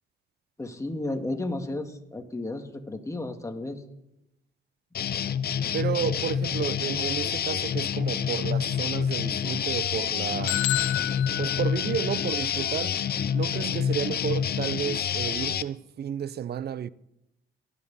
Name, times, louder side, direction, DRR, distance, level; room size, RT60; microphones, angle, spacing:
voice 1, 0.6-3.8, left 2 dB, 15° left, 2.2 m, -33 dB
sound 1, 4.9-15.6, left 8 dB, 50° left, 0.8 m, -28 dB
voice 2, 5.7-10.6 11.4-12.9 13.3-16.9, right 9 dB, 55° right, 0.7 m, -31 dB
sound 2, 10.5-12.4, left 19 dB, 90° left, 0.5 m, -30 dB
19.0 x 12.5 x 5.6 m
cardioid pair, 90°, 20 cm